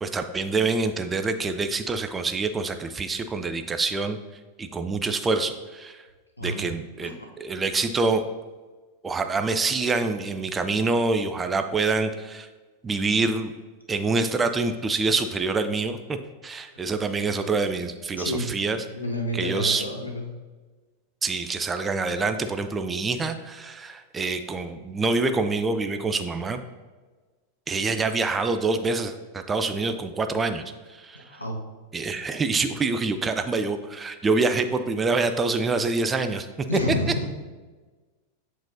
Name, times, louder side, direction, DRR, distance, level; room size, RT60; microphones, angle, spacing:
voice 1, 0.0-4.2 4.6-6.0 6.4-7.1 7.4-8.2 9.0-12.5 12.8-13.5 13.9-18.8 19.3-19.8 21.2-26.6 27.7-30.6 30.9-31.4 31.9-36.5, right 3 dB, 15° right, 8 dB, 0.4 m, -26 dB
voice 2, 6.4-6.7 7.0-7.3 18.2-18.4 18.9-20.3 31.2-31.6 36.7-37.3, equal, 85° left, 1 dB, 0.9 m, -29 dB
7.5 x 4.6 x 2.7 m, 1.3 s
figure-of-eight pair, 90°, 0 cm